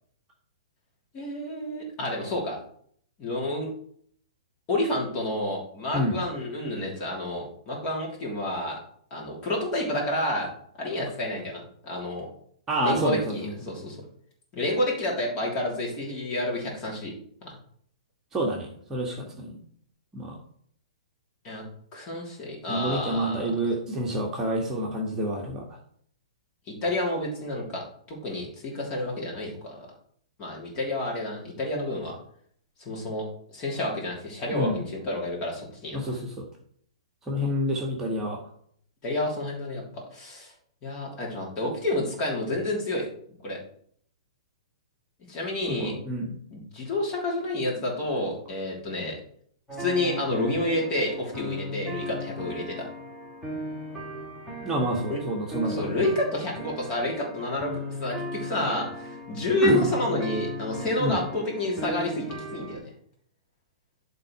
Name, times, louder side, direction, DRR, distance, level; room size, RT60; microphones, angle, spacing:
voice 1, 1.1-2.6 3.2-3.7 4.7-8.8 9.1-10.5 10.8-12.3 12.8-14.0 14.5-17.1 17.4-17.5 21.4-21.6 21.9-23.4 26.7-27.8 28.1-29.9 30.4-32.1 32.8-33.3 33.5-36.2 39.0-40.5 40.8-43.0 43.4-43.6 45.3-45.9 46.5-49.2 49.8-52.9 55.1-55.2 55.6-57.7 58.0-62.8, left 1 dB, 30° left, -2 dB, 3.3 m, -29 dB
voice 2, 12.7-13.5 18.3-19.6 20.1-20.3 22.7-25.6 34.5-34.8 35.9-36.5 37.3-38.4 45.8-46.3 54.6-55.9 59.6-59.9 61.0-61.2, right 1 dB, 15° right, -2 dB, 1.5 m, -28 dB
sound 1, 49.7-62.8, left 1 dB, 10° left, 2.4 m, -37 dB
11.0 x 4.0 x 4.8 m, 0.63 s
figure-of-eight pair, 115°, 3 cm